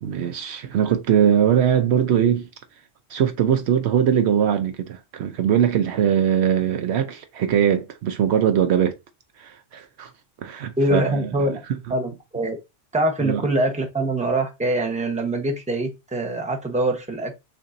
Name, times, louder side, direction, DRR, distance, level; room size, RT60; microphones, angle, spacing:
voice 1, 0.0-2.5 3.1-9.0 9.4-10.1 10.4-11.3 13.2-13.4, right 9 dB, 70° right, 0.8 m, -21 dB
voice 2, 10.8-11.6 11.9-12.6 12.9-17.4, right 1 dB, 5° right, 0.8 m, -24 dB
6.6 x 2.6 x 2.5 m
omnidirectional pair, 1.2 m